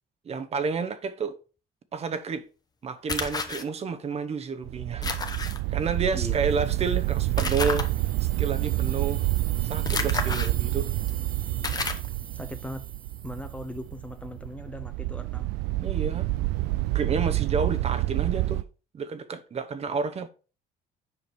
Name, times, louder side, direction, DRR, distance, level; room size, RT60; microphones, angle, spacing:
voice 1, 0.2-1.4 1.9-2.5 2.8-5.1 5.7-7.9 8.2-9.3 9.6-10.9 15.8-16.3 16.9-18.6 18.9-20.3, right 5 dB, 40° right, 0.8 m, -30 dB
sound 1, 3.1-3.6 5.0-5.6 7.4-7.9 9.9-10.5 11.1-11.2 11.6-12.1, left 4 dB, 25° left, 1.0 m, -30 dB
sound 2, 4.6-18.6, right 18 dB, 85° right, 0.4 m, -28 dB
voice 2, 6.1-6.7 12.3-12.9 13.2-15.5, left 1 dB, 10° left, 0.6 m, -39 dB
sound 3, 6.1-14.0, right 7 dB, 55° right, 1.2 m, -44 dB
6.9 x 5.1 x 4.5 m
cardioid pair, 110°, 17 cm